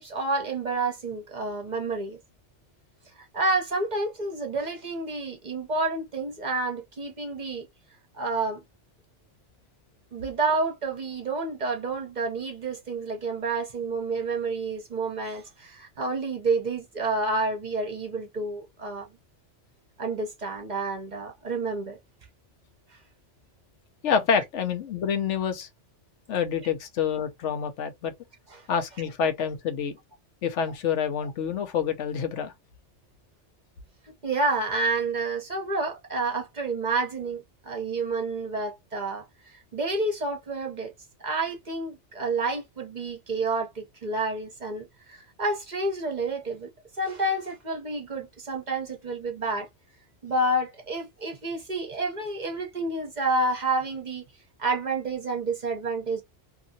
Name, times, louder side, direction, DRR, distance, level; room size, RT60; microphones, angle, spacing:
voice 1, 0.0-2.2 3.2-7.7 8.1-8.6 10.1-19.2 20.0-22.0 28.5-28.6 34.2-40.9 41.2-46.7 47.0-49.7 50.2-54.2 54.6-56.2, right 3 dB, 45° right, 0.7 m, -29 dB
voice 2, 24.0-25.7 26.3-28.1 28.7-29.9 30.4-32.5, left 7 dB, 80° left, 1.0 m, -27 dB
2.9 x 2.6 x 2.5 m
omnidirectional pair, 1.2 m